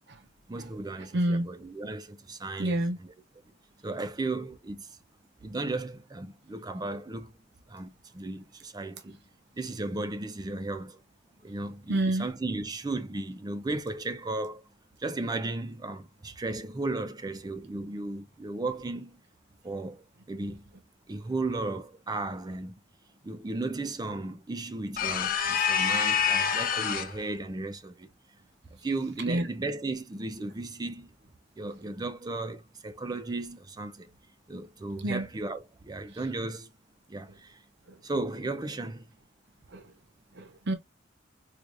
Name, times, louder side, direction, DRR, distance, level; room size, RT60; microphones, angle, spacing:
voice 1, 0.5-3.1 3.8-4.9 5.4-7.3 7.7-9.2 9.6-11.0 11.4-14.6 15.0-19.2 19.6-20.6 21.1-22.8 23.2-28.1 28.7-31.1 31.6-34.1 34.5-36.7 37.1-37.6 38.0-39.1, right 2 dB, 20° right, 0.4 m, -35 dB
voice 2, 1.1-1.5 2.6-3.0 11.9-12.3 29.3-29.4 35.0-35.2 39.7-39.8 40.4-40.7, right 1 dB, 60° right, 0.8 m, -27 dB
sound 1, 25.0-27.2, left 7 dB, 50° left, 0.8 m, -26 dB
4.7 x 2.4 x 2.5 m
head